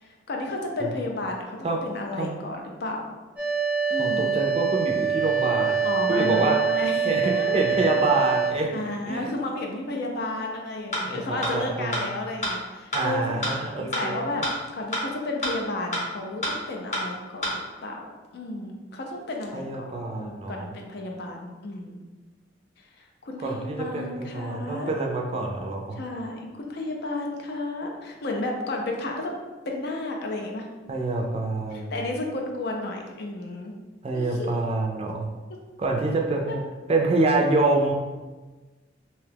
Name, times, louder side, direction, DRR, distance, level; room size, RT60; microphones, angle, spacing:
voice 1, 0.0-3.0 3.9-4.3 5.8-7.7 8.7-13.5 13.8-14.4 14.7-18.0 18.3-19.9 20.2-22.0 23.0-24.9 26.0-29.4 29.7-30.7 31.7-33.7 34.1-34.6 36.5-36.6, left 2 dB, 60° left, 1 dB, 0.5 m, -32 dB
sound 1, 3.4-8.5, right 6 dB, 10° right, 0.8 m, -25 dB
voice 2, 4.0-6.6 7.0-7.2 7.5-8.7 9.1-9.3 11.0-12.1 12.9-14.2 19.5-20.7 23.4-26.0 30.9-31.9 34.0-35.3 35.8-36.6 36.9-37.9, right 2 dB, 30° right, 0 dB, 0.4 m, -26 dB
sound 2, 10.9-11.0 11.4-11.5 11.9-12.0 12.4-12.5 12.9-13.0 13.4-13.5 13.9-14.0 14.4-14.5 14.9-15.0 15.4-15.5 15.9-16.0 16.4-16.5 16.9-17.0 17.4-17.5, left 1 dB, 40° left, 0.8 m, -26 dB
2.8 x 2.2 x 3.3 m, 1.2 s
head